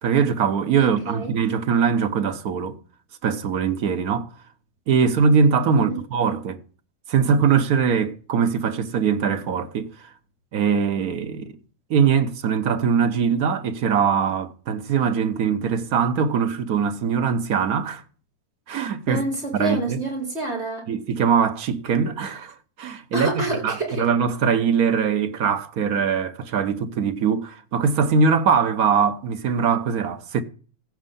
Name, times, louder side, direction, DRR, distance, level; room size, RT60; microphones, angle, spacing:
voice 1, 0.0-2.8 3.2-4.3 4.9-6.6 7.1-10.1 10.5-11.6 11.9-18.0 18.7-19.2 19.5-20.0 20.9-23.3 23.6-30.4, right 6 dB, 85° right, 1.5 m, -22 dB
voice 2, 0.8-1.3 5.7-6.0 19.1-20.9 23.1-24.1, right 2 dB, 45° right, 4.7 m, -28 dB
15.5 x 5.3 x 5.5 m
omnidirectional pair, 1.5 m